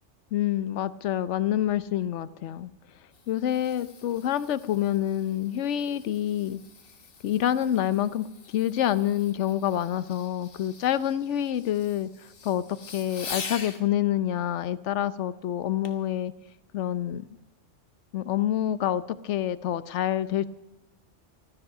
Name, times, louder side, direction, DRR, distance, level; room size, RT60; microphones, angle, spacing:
voice 1, 0.3-2.7 3.3-6.6 7.2-12.1 12.4-16.3 16.7-17.2 18.1-20.5, left 11 dB, 70° left, 15 dB, 1.0 m, -27 dB
Fireworks, 2.8-13.8 15.8-16.1 16.7-16.8, left 5 dB, 50° left, 1.4 m, -44 dB
14.5 x 13.0 x 6.5 m, 0.97 s
omnidirectional pair, 1.3 m